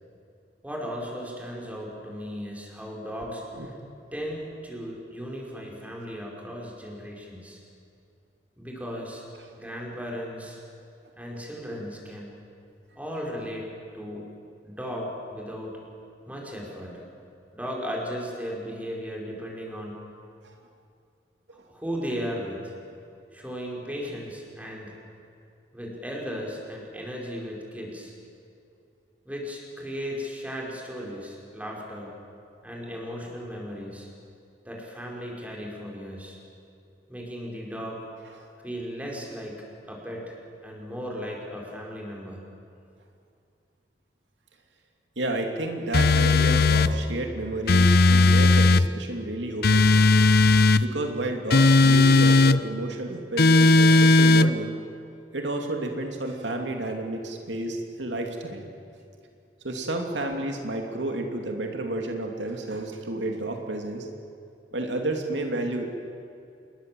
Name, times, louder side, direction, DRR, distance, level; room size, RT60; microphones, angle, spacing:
voice 1, 0.6-3.7 4.1-7.6 8.6-9.2 9.6-10.6 11.1-12.3 13.0-13.7 13.9-14.3 14.6-15.8 16.3-17.0 17.5-20.1 21.7-22.7 23.3-25.0 25.7-28.1 29.3-32.1 32.6-34.1 34.6-36.4 37.1-38.0 38.6-40.4 40.6-42.4, equal, 10° right, -2 dB, 5.3 m, -36 dB
voice 2, 45.2-50.0 50.8-54.7 55.3-58.6 59.6-64.1 64.7-65.8, right 2 dB, 80° right, 3 dB, 2.7 m, -31 dB
sound 1, 45.9-46.9 47.7-48.9 49.6-50.8 51.5-52.6 53.4-54.5, left 3 dB, 60° left, 0.7 m, -17 dB
27.5 x 21.5 x 7.8 m, 2.6 s
head